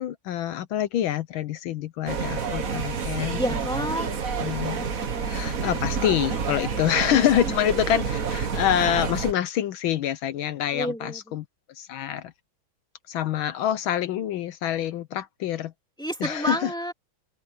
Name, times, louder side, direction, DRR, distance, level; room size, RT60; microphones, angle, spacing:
voice 1, 0.0-3.4 4.4-4.9 5.2-11.4 11.8-12.3 13.1-15.7 16.2-16.7, left 11 dB, 75° left, 1.5 m, -26 dB
sound 1, 2.1-9.3, right 6 dB, 45° right, 1.7 m, -29 dB
voice 2, 3.4-4.1 10.7-11.2 16.0-16.9, equal, ahead, 3.1 m, -29 dB
open air
omnidirectional pair, 2.3 m